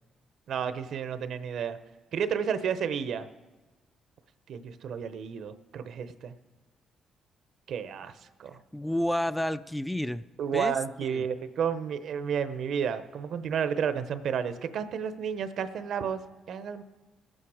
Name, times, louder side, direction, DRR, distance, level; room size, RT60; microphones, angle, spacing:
voice 1, 0.5-1.8 2.1-3.3 4.5-6.3 7.7-8.1 8.4-8.6 10.4-16.2 16.5-16.8, right 7 dB, 70° right, 12 dB, 0.8 m, -31 dB
voice 2, 8.7-10.2 10.5-11.3, left 1 dB, 5° left, 13 dB, 0.4 m, -30 dB
20.5 x 8.9 x 4.9 m, 1.2 s
cardioid pair, 90°, 0 cm